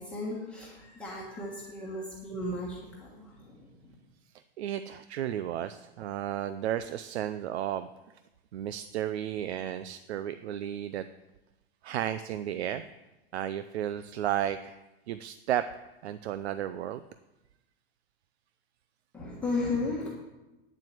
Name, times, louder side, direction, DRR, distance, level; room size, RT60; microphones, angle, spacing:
voice 1, 0.0-3.7 19.1-20.1, left 2 dB, 5° left, -6 dB, 1.4 m, -35 dB
voice 2, 4.6-7.9 8.5-11.1 11.8-12.8 13.3-15.7 16.0-17.0, right 11 dB, 85° right, 12 dB, 0.6 m, -33 dB
9.8 x 7.6 x 7.8 m, 1.0 s
supercardioid pair, 175°, 32 cm